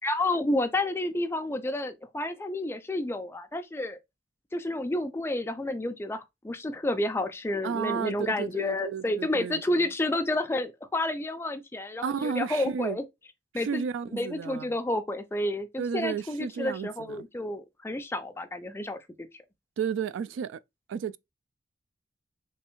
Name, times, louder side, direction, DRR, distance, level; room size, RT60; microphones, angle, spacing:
voice 1, 0.0-4.0 4.5-13.0 13.5-13.8 14.1-19.0 19.3-19.4, left 1 dB, 15° left, 0.3 m, -30 dB
voice 2, 7.6-9.9 12.0-13.0 13.5-14.8 15.8-17.2 19.8-20.6 20.9-21.2, right 7 dB, 85° right, 0.3 m, -33 dB
3.4 x 3.1 x 2.9 m
head